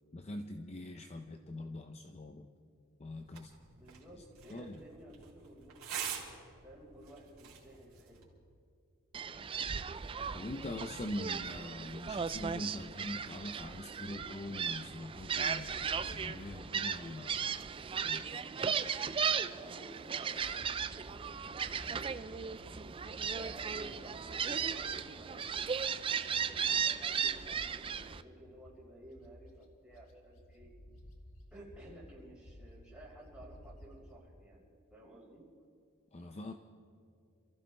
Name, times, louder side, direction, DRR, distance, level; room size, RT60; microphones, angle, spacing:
voice 1, 0.1-2.5 3.0-3.5 4.5-4.8 10.3-17.6 18.0-18.5 36.1-36.5, left 1 dB, 30° left, 5 dB, 0.6 m, -43 dB
sound 1, 3.2-8.2, right 8 dB, 75° right, 3.4 m, -46 dB
voice 2, 3.7-6.3 6.6-8.2 19.4-21.1 21.4-22.4 23.1-25.5 26.3-30.7 31.5-35.4, right 1 dB, 5° right, -7 dB, 5.3 m, -54 dB
Gull seagull, 9.1-28.2, right 6 dB, 25° right, 0.3 m, -36 dB
Bird, 15.1-19.5 19.9-34.1, equal, 75° left, 1.6 m, -55 dB
27.5 x 14.5 x 3.4 m, 2.4 s
head